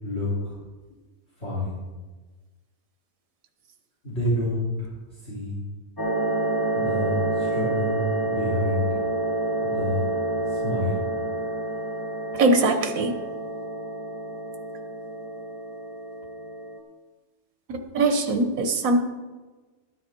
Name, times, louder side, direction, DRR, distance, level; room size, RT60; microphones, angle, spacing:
voice 1, 0.0-0.6 1.4-1.8 4.0-4.9 5.2-5.6 6.7-8.9 9.6-10.0 10.5-10.9, left 1 dB, 50° left, -8 dB, 4.4 m, -28 dB
sound 1, 6.0-16.8, right 2 dB, 15° left, 1.7 m, -28 dB
voice 2, 12.3-13.2 17.7-19.0, right 2 dB, 90° right, 6 dB, 1.5 m, -22 dB
13.5 x 9.7 x 4.5 m, 1.3 s
omnidirectional pair, 1.4 m